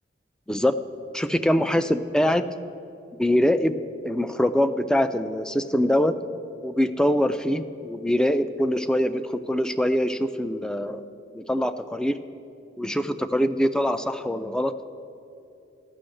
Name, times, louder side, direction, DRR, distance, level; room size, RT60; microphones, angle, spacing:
voice 1, 1.1-2.5 3.2-6.2 6.6-11.0 11.3-12.2 12.8-14.8, equal, 5° left, 11 dB, 0.3 m, -23 dB
13.0 x 6.1 x 7.7 m, 2.6 s
head